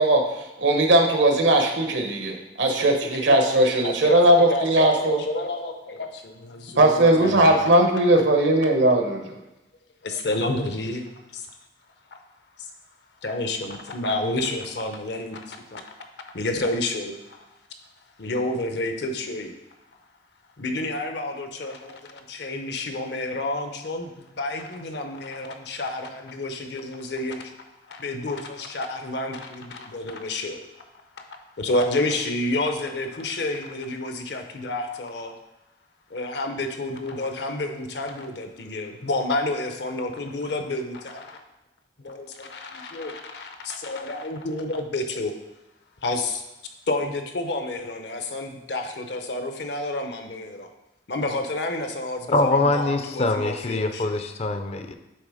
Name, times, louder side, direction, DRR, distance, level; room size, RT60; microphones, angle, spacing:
voice 1, 0.0-5.2 6.8-9.2, right 1 dB, 80° right, 3 dB, 1.1 m, -19 dB
voice 2, 2.8-3.3 3.8-7.6 10.0-11.5 12.1-12.2 12.6-12.7 13.2-15.9 16.2-17.4 18.2-19.5 20.6-27.5 27.9-30.6 31.1-31.2 31.6-35.3 36.1-41.4 42.0-45.3 46.0-46.4 46.9-50.7 51.1-54.1, left 2 dB, 65° left, 6 dB, 0.8 m, -30 dB
voice 3, 52.3-54.9, left 2 dB, 35° left, 8 dB, 0.5 m, -23 dB
7.9 x 3.4 x 4.9 m, 0.97 s
head